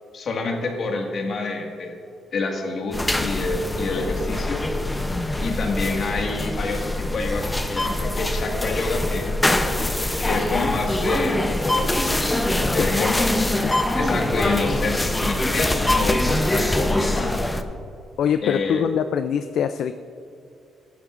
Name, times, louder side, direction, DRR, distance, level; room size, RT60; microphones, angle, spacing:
voice 1, 0.1-2.0 2.3-4.6 5.4-9.3 10.2-11.9 12.7-13.4 14.0-17.4 18.4-18.8, left 3 dB, 45° left, 1 dB, 1.7 m, -27 dB
sound 1, 2.9-17.6, left 1 dB, 10° left, 0.6 m, -23 dB
voice 2, 12.8-13.1 13.6-13.7 18.2-19.9, left 8 dB, 65° left, 10 dB, 0.3 m, -24 dB
18.0 x 12.0 x 2.5 m, 2.5 s
cardioid pair, 150°, 0 cm